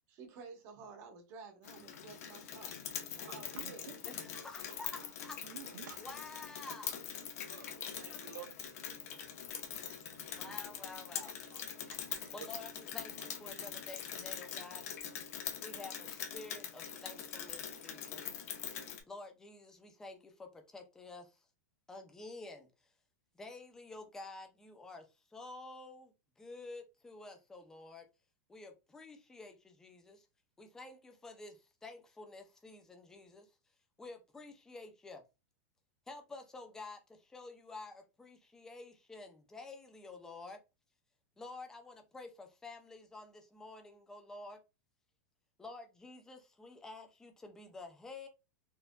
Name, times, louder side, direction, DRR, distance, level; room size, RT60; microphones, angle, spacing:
voice 1, 0.1-2.7 3.1-3.8, right 5 dB, 30° right, 0.8 m, -52 dB
Rain, 1.6-19.0, left 8 dB, 55° left, 0.8 m, -43 dB
voice 2, 3.3-3.9 5.0-5.1 5.4-6.1 7.1-7.3 7.5-7.7 8.0-9.2 9.9-10.0 10.5-10.8 11.5-11.6 11.9-12.6, right 9 dB, 80° right, 0.7 m, -52 dB
voice 3, 4.4-5.4 6.0-7.0 8.1-8.2 10.3-11.3 12.3-14.8 15.6-18.2 19.1-21.3 21.9-22.7 23.4-25.0 25.3-26.1 26.4-28.0 28.5-30.2 30.6-31.6 31.8-33.4 34.0-35.2 36.1-37.0 37.3-40.6 41.4-44.6 45.6-48.3, left 3 dB, 5° left, 0.4 m, -50 dB
4.3 x 2.5 x 2.2 m
supercardioid pair, 170°, 10 cm